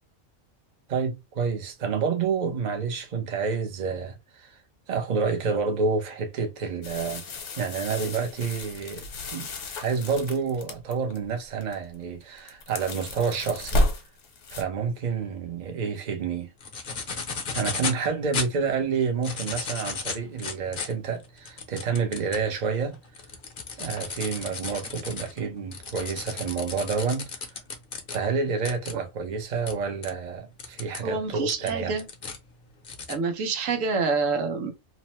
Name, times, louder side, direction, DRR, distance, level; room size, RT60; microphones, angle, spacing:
voice 1, 0.9-4.6 4.9-7.2 7.6-9.1 9.3-13.8 14.5-16.5 17.5-23.0 23.8-27.3 28.1-32.0, right 5 dB, 40° right, 0.7 m, -29 dB
sound 1, 6.8-11.2 11.6-12.0 12.2-14.6, left 1 dB, 70° left, 1.1 m, -31 dB
sound 2, 16.6-18.0 18.3-18.5 19.1-22.5 22.9-28.2 28.6-28.9 29.7-29.8 30.0-30.1 30.6-31.0 31.5-32.4 32.8-33.1, left 5 dB, 50° left, 0.8 m, -34 dB
voice 2, 31.0-32.0 33.1-34.7, right 4 dB, 80° right, 1.1 m, -27 dB
2.9 x 2.1 x 2.9 m
omnidirectional pair, 1.3 m